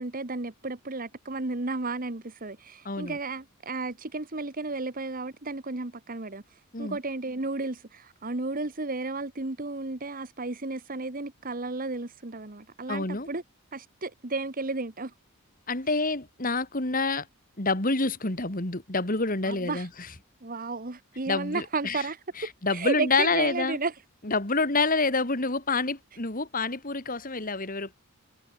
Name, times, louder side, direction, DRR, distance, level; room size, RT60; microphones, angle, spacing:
voice 1, 0.0-13.4 13.7-15.1 19.4-19.9 20.4-24.0, right 3 dB, 40° right, 1.4 m, -33 dB
voice 2, 2.8-3.2 6.7-7.0 12.9-13.3 15.7-17.3 17.6-19.9 21.3-22.0 22.6-23.8 24.2-28.0, left 3 dB, 40° left, 2.7 m, -27 dB
head